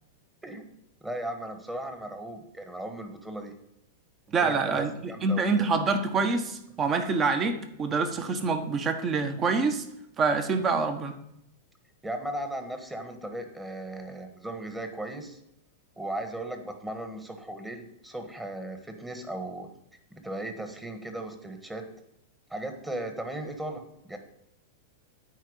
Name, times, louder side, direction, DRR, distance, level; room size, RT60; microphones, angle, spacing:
voice 1, 1.0-3.5 4.4-5.7 12.0-15.4 16.0-19.7 20.1-21.9 22.5-24.2, right 1 dB, 10° right, 6 dB, 1.4 m, -37 dB
voice 2, 4.3-9.8 10.2-11.2, right 4 dB, 30° right, 7 dB, 1.2 m, -26 dB
9.2 x 4.5 x 6.4 m, 0.81 s
hypercardioid pair, 115°, 0 cm